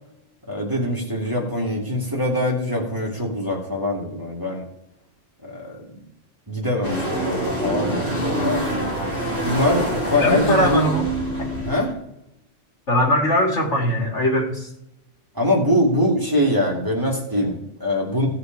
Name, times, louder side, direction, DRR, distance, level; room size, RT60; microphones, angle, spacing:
voice 1, 0.5-4.6 5.4-5.8 6.5-8.6 9.4-10.8 11.6-11.9 15.3-18.3, left 1 dB, 15° right, -2 dB, 2.3 m, -23 dB
sound 1, 6.8-11.9, right 1 dB, 50° left, 3.7 m, -25 dB
voice 2, 10.1-11.1 12.9-14.7, equal, 70° left, 1 dB, 2.5 m, -20 dB
16.5 x 6.6 x 4.6 m, 0.84 s
omnidirectional pair, 1.2 m